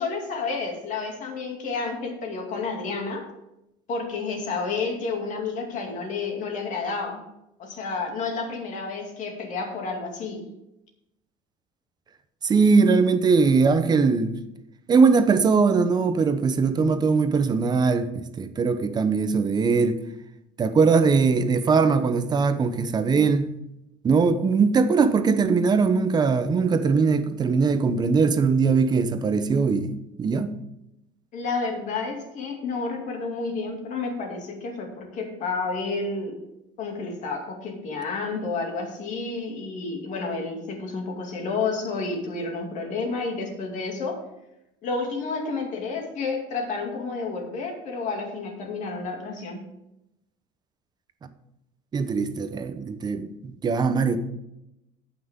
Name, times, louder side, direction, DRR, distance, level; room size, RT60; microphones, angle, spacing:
voice 1, 0.0-3.2 3.9-7.2 7.6-10.5 31.3-36.4 36.8-44.2 44.8-49.7, left 4 dB, 50° left, 2.5 m, -30 dB
voice 2, 12.4-14.4 14.9-20.0 20.6-23.6 24.0-30.6 51.9-54.2, right 4 dB, 25° right, 0.8 m, -21 dB
17.5 x 6.0 x 3.7 m
cardioid pair, 145°, 17 cm